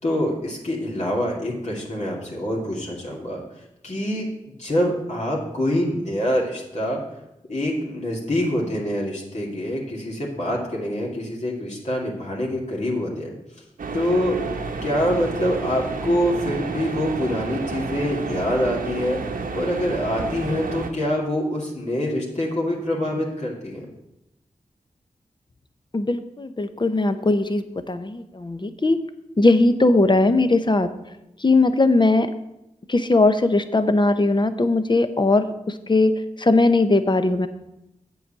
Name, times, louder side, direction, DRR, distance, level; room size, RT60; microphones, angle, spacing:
voice 1, 0.0-3.4 3.8-4.3 4.6-7.0 7.5-13.3 13.9-14.4 14.8-19.2 19.5-23.9, equal, 55° left, -3 dB, 2.3 m, -25 dB
sound 1, 13.8-20.9, right 4 dB, 90° right, 0.9 m, -30 dB
voice 2, 25.9-29.0 29.4-30.9 31.4-32.3 32.9-37.5, left 2 dB, 35° left, 10 dB, 0.8 m, -19 dB
7.8 x 4.8 x 7.3 m, 0.89 s
cardioid pair, 40°, 14 cm